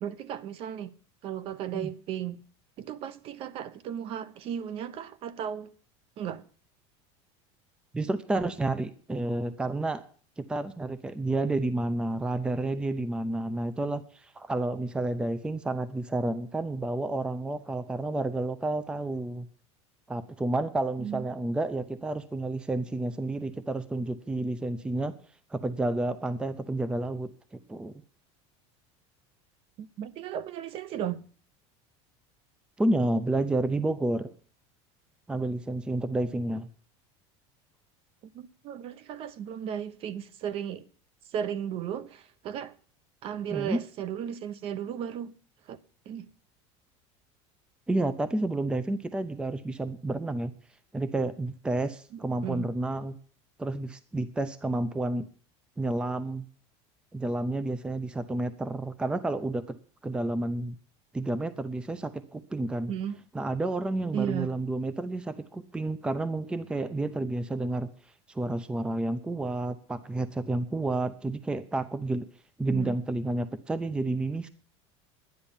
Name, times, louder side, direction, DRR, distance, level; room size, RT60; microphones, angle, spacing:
voice 1, 0.0-0.9 1.2-2.4 2.8-5.7 6.2-6.4 21.0-21.3 29.8-31.2 38.3-40.9 41.3-42.7 43.2-45.3 45.7-45.8 46.1-46.3 52.1-52.7 62.9-63.2 64.1-64.5 72.7-73.0, right 9 dB, 40° right, 0.8 m, -35 dB
voice 2, 7.9-10.0 10.4-19.5 20.1-25.1 25.5-27.9 32.8-34.3 35.3-36.7 43.5-43.8 47.9-50.5 50.9-53.2 53.6-55.2 55.8-56.5 57.1-59.8 60.0-60.8 61.1-62.9 63.3-67.9 68.3-72.3 72.6-74.5, right 2 dB, 5° right, 0.6 m, -30 dB
11.5 x 10.0 x 7.1 m
cardioid pair, 155°, 15 cm